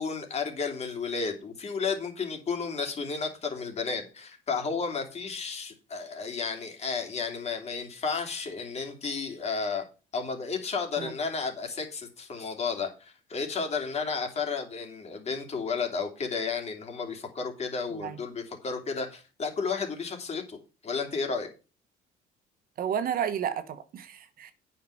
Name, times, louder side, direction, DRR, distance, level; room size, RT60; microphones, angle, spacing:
voice 1, 0.0-9.8 10.1-21.5, left 5 dB, 40° left, 3.0 m, -32 dB
voice 2, 22.8-24.5, right 8 dB, 60° right, 1.3 m, -32 dB
8.8 x 5.8 x 6.5 m
cardioid pair, 110°, 17 cm